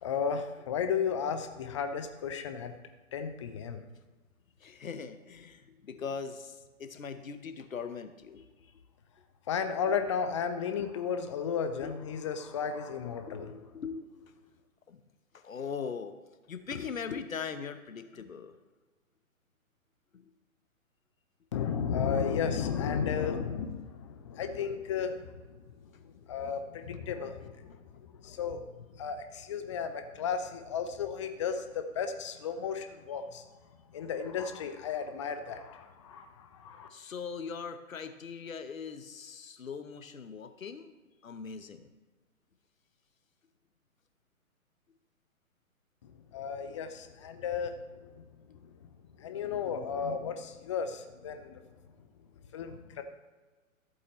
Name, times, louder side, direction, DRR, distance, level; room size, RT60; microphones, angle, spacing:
voice 1, 0.0-2.7 3.1-3.8 9.5-13.5 21.5-25.2 25.7-25.8 26.0-28.6 28.9-33.4 33.9-36.9 46.0-47.7 48.0-48.7 49.2-51.6 52.5-53.0, left 6 dB, 20° left, 8 dB, 0.6 m, -34 dB
voice 2, 4.6-8.7 9.9-10.0 11.8-12.3 13.2-14.5 14.9-15.0 15.3-16.2 16.5-18.5 20.1-20.3 36.9-40.9 41.2-41.9, left 6 dB, 70° left, 9 dB, 1.0 m, -41 dB
14.0 x 8.0 x 3.1 m, 1.3 s
figure-of-eight pair, 130°, 42 cm